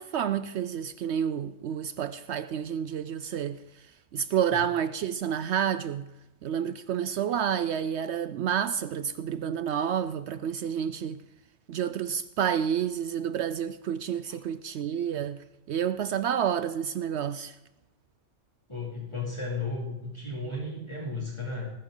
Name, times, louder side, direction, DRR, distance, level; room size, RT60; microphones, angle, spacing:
voice 1, 0.0-3.6 4.1-6.1 6.4-11.2 11.7-17.6, right 8 dB, 70° right, 0.8 m, -29 dB
voice 2, 18.7-21.7, left 3 dB, 25° left, 2.8 m, -34 dB
19.5 x 11.0 x 3.8 m
omnidirectional pair, 1.3 m